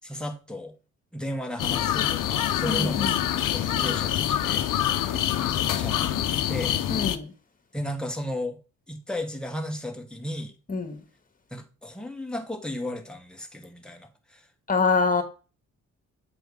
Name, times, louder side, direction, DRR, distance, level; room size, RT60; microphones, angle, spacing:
voice 1, 0.0-0.7 1.1-3.1 3.5-4.7 5.1-5.5 5.7-6.8 7.7-8.6 8.9-10.5 11.5-14.5, left 1 dB, 5° left, 1.7 m, -34 dB
sound 1, 1.6-7.2, left 11 dB, 80° left, 0.8 m, -25 dB
voice 2, 2.7-3.1 6.9-7.3 10.7-11.0 14.7-15.2, left 4 dB, 25° left, 1.8 m, -25 dB
8.3 x 3.5 x 5.0 m
cardioid pair, 90°, 31 cm